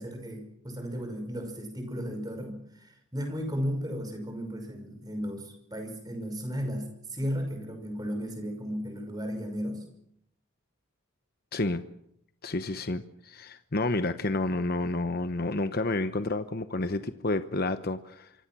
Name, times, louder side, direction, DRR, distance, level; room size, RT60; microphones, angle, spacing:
voice 1, 0.0-9.8, equal, 20° right, 5 dB, 5.6 m, -35 dB
voice 2, 11.5-11.8 12.4-18.3, left 2 dB, 45° left, 10 dB, 0.9 m, -30 dB
26.5 x 25.0 x 6.1 m, 0.74 s
head